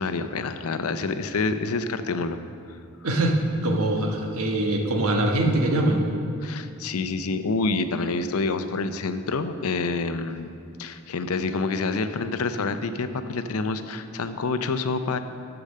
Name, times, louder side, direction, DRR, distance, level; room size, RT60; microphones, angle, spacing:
voice 1, 0.0-2.4 6.4-10.5 10.8-15.2, left 3 dB, 85° left, 10 dB, 0.6 m, -27 dB
voice 2, 3.0-6.0, right 1 dB, 85° right, 1 dB, 1.2 m, -23 dB
8.3 x 7.0 x 6.5 m, 2.5 s
head